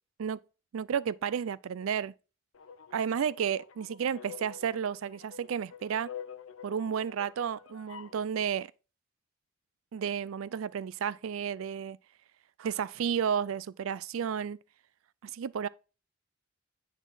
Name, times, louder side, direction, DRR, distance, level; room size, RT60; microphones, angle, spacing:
voice 1, 0.7-2.1 2.9-6.1 6.6-8.7 9.9-12.0 12.6-14.6 15.2-15.7, right 7 dB, 75° right, 0.4 m, -32 dB
sound 1, 2.5-8.2, left 8 dB, 75° left, 0.7 m, -47 dB
10.0 x 4.1 x 4.1 m
head